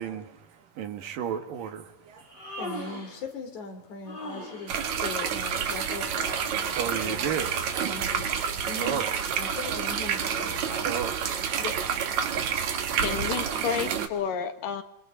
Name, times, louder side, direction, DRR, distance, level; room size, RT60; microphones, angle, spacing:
voice 1, 0.0-3.0 6.2-7.9 8.4-9.2 10.2-11.6, right 8 dB, 80° right, 3.6 m, -36 dB
Human voice, 2.2-3.2 4.0-4.8 6.2-6.9, left 1 dB, 30° left, 5.7 m, -39 dB
voice 2, 2.6-7.6 7.9-8.3 8.6-9.0 9.3-10.9 11.6-11.8, left 4 dB, 60° left, 4.6 m, -40 dB
sound 1, 4.7-14.1, right 7 dB, 60° right, 2.9 m, -29 dB
voice 3, 13.0-14.8, left 8 dB, 80° left, 3.2 m, -30 dB
28.5 x 24.0 x 5.7 m
omnidirectional pair, 3.9 m